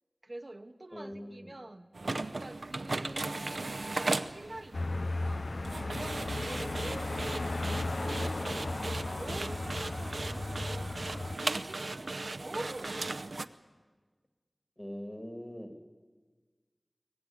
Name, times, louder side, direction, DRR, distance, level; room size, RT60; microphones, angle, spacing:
voice 1, 0.2-2.0 2.4-5.6 5.9-10.9 11.4-13.5, right 1 dB, 50° right, 7 dB, 0.9 m, -47 dB
voice 2, 0.9-1.6 14.8-15.9, equal, 20° left, 7 dB, 2.5 m, -42 dB
sound 1, 1.9-13.5, right 2 dB, 85° right, 0.7 m, -37 dB
sound 2, 4.7-11.3, left 2 dB, 85° left, 0.6 m, -35 dB
23.0 x 19.0 x 8.8 m, 1.4 s
wide cardioid pair, 50°, 0 cm